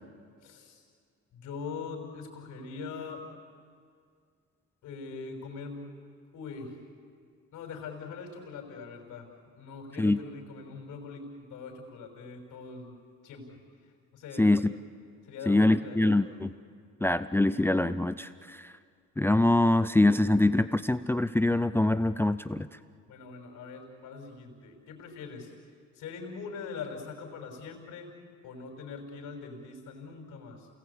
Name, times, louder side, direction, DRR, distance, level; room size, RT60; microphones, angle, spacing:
voice 1, 0.4-0.8 1.3-3.2 4.8-5.9 6.3-6.8 7.5-9.3 9.5-13.6 14.1-14.7 15.2-16.2 23.1-25.5 25.9-28.1 28.4-30.7, left 4 dB, 80° left, 2 dB, 5.7 m, -42 dB
voice 2, 14.4-14.7 15.5-16.5 17.0-18.7 19.2-22.7, left 2 dB, 10° left, 14 dB, 0.6 m, -24 dB
28.5 x 19.5 x 8.5 m, 2.2 s
cardioid pair, 90°, 30 cm